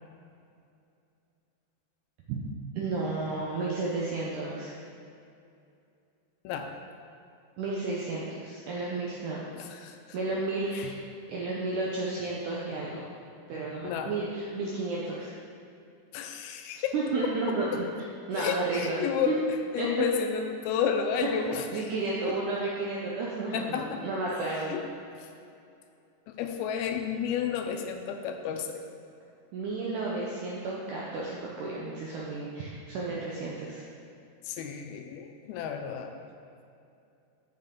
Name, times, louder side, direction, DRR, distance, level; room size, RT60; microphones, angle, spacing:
voice 1, 2.7-4.8 7.6-9.4 10.1-11.0 11.3-13.1 13.5-15.3 16.8-17.8 18.3-19.0 19.3-19.4 19.8-19.9 21.7-24.8 29.5-33.8, right 3 dB, 85° right, -4 dB, 1.7 m, -32 dB
voice 2, 9.5-10.2 10.7-11.0 13.8-14.2 16.1-16.9 17.5-17.6 18.4-19.4 19.7-21.9 23.5-24.0 24.7-24.8 25.2-25.3 26.3-28.8 34.4-36.2, left 7 dB, 80° left, 5 dB, 2.3 m, -31 dB
7.9 x 6.6 x 3.7 m, 2.6 s
omnidirectional pair, 4.6 m